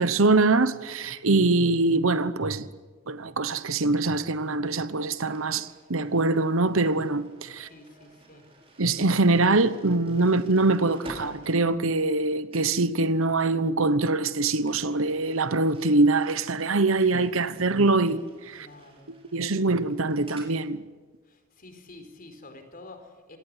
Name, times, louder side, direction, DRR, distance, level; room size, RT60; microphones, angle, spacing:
voice 1, 0.0-2.7 3.1-7.7 8.8-18.7 19.3-20.8, right 3 dB, 65° right, 1.1 m, -23 dB
sound 1, 5.3-12.2 12.5-12.8 14.6-20.6, right 1 dB, 25° right, 5.8 m, -51 dB
voice 2, 7.7-8.4 18.6-19.1 21.3-23.4, left 2 dB, 40° left, 4.5 m, -48 dB
26.5 x 18.5 x 9.9 m
head